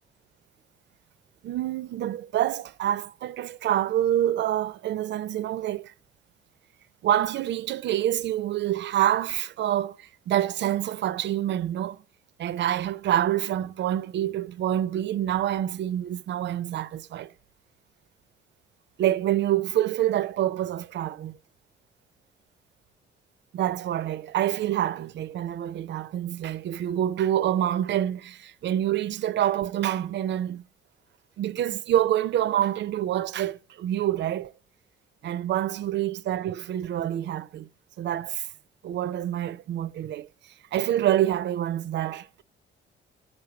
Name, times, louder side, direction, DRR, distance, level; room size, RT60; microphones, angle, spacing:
voice 1, 1.4-5.9 7.0-12.0 12.4-17.3 19.0-21.4 23.5-30.6 31.4-34.5 35.2-37.7 38.0-38.5 38.8-40.3 40.7-42.4, right 12 dB, 65° right, 0.5 m, -27 dB
9.3 x 5.4 x 5.7 m
cardioid pair, 90°, 20 cm